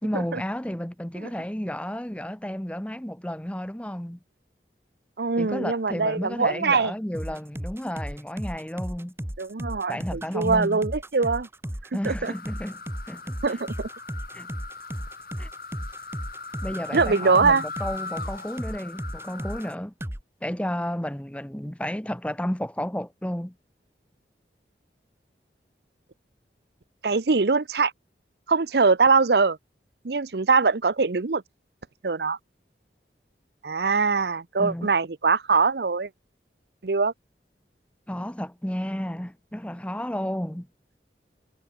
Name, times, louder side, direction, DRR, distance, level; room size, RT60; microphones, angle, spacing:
voice 1, 0.0-4.2 5.4-9.1 9.9-10.8 11.9-12.8 13.1-13.6 14.3-14.5 15.4-15.5 16.6-19.9 20.4-23.5 34.6-34.9 38.1-40.7, equal, 5° left, 0.9 m, -32 dB
voice 2, 5.2-6.9 9.4-11.5 12.0-12.3 13.4-13.9 16.9-17.6 27.0-27.9 28.5-29.6 30.0-31.4 32.0-32.4 33.6-36.1 36.8-37.1, right 4 dB, 70° right, 0.7 m, -22 dB
sound 1, 7.1-19.7 20.0-20.2, equal, 15° right, 1.8 m, -35 dB
sound 2, 12.2-19.7, left 4 dB, 55° left, 4.3 m, -39 dB
head